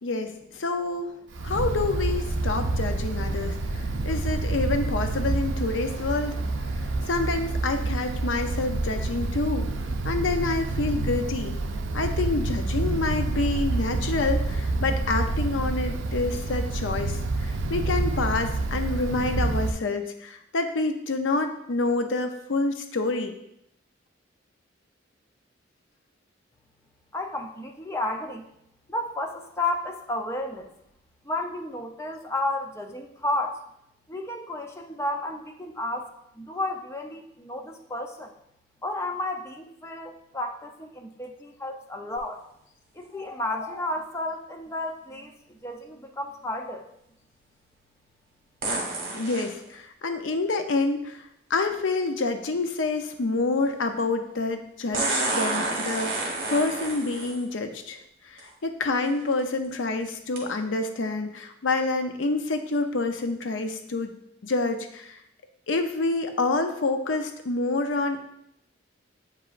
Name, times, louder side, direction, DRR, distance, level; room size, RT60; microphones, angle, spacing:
voice 1, 0.0-1.2 1.4-6.4 6.8-9.7 10.0-11.6 11.9-23.3 49.2-64.1 64.4-65.2 65.7-68.2, left 3 dB, 85° left, 6 dB, 0.6 m, -28 dB
Wind, 1.3-19.7, right 2 dB, 80° right, 0.5 m, -28 dB
voice 2, 27.1-28.5 28.9-30.7 31.2-33.6 34.1-38.3 38.8-42.4 42.9-46.9, left 2 dB, 15° left, 3 dB, 0.6 m, -32 dB
sound 1, 42.2-42.3 48.6-49.5 51.5-51.6 54.9-57.4 58.4-58.5 59.1-59.4 60.4-60.5, right 2 dB, 50° right, 1.6 m, -29 dB
8.1 x 4.8 x 2.5 m, 0.77 s
head